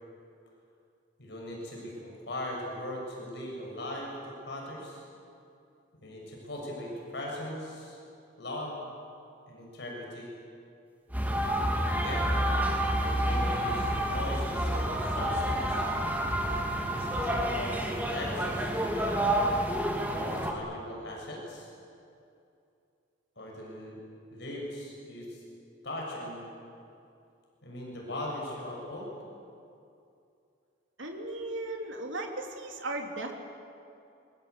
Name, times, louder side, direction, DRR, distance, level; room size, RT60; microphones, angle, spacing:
voice 1, 1.2-4.1 4.5-5.0 6.0-8.0 8.4-8.8 9.5-10.3 11.8-12.3 13.1-15.8 16.8-19.2 20.1-21.7 23.4-24.0 24.3-25.4 25.8-26.4 27.6-29.1, left 1 dB, 60° left, -2 dB, 7.0 m, -39 dB
sound 1, 11.1-20.5, right 1 dB, 10° right, 2.4 m, -29 dB
voice 2, 31.0-33.3, right 2 dB, 75° right, 2 dB, 3.5 m, -36 dB
27.0 x 23.5 x 8.4 m, 2.6 s
head